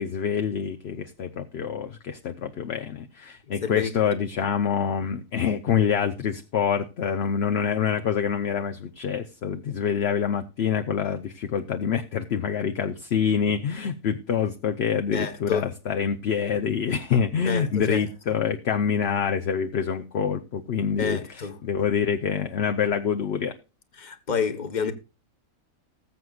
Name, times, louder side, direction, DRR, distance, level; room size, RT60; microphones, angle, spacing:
voice 1, 0.0-23.5, left 7 dB, 55° left, 0.9 m, -26 dB
voice 2, 3.6-3.9 15.1-15.7 17.4-18.0 21.0-21.6 24.0-24.9, left 6 dB, 35° left, 1.2 m, -28 dB
19.5 x 7.9 x 2.4 m
omnidirectional pair, 1.5 m